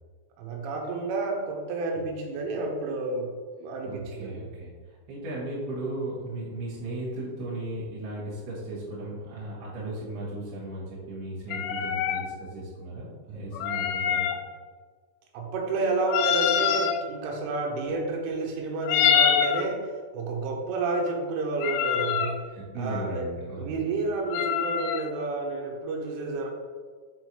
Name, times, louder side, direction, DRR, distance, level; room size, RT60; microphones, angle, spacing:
voice 1, 0.4-3.3 3.6-4.4 15.3-22.4 22.8-23.2 23.5-26.5, right 3 dB, 85° right, 0 dB, 3.5 m, -30 dB
voice 2, 3.8-14.3 22.1-22.2 22.5-23.8, right 1 dB, 60° right, -9 dB, 3.4 m, -36 dB
sound 1, 11.5-12.2 13.5-14.4 16.1-17.0 18.8-19.7 21.6-22.3 24.3-25.0, left 8 dB, 85° left, 2.9 m, -25 dB
7.6 x 4.5 x 3.1 m, 1.5 s
omnidirectional pair, 5.5 m